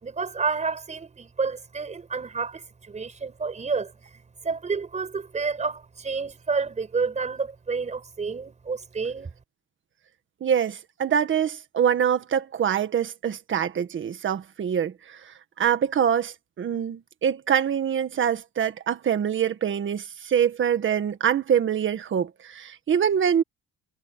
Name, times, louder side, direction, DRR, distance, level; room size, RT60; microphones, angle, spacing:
voice 1, 0.0-9.3, right 4 dB, 20° right, 5.1 m, -30 dB
voice 2, 10.4-23.4, right 8 dB, 35° right, 1.6 m, -25 dB
cardioid pair, 175°, 33 cm